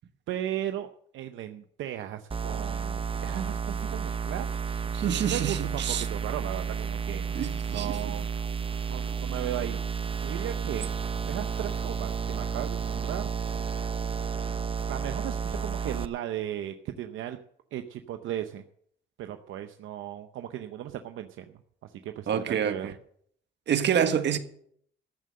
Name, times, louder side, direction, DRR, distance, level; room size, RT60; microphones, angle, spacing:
voice 1, 0.3-4.5 4.9-5.0 5.3-7.2 7.7-8.3 8.9-9.8 10.2-10.9 11.3-13.3 14.8-17.4 17.7-18.6 19.2-21.4 21.8-22.9, right 11 dB, 80° right, 0.8 m, -36 dB
sound 1, 2.3-16.1, right 6 dB, 25° right, 0.7 m, -32 dB
voice 2, 4.9-6.1 7.3-8.0 22.3-22.9 23.7-24.4, right 8 dB, 65° right, 1.5 m, -27 dB
14.0 x 7.6 x 7.6 m
cardioid pair, 90°, 20 cm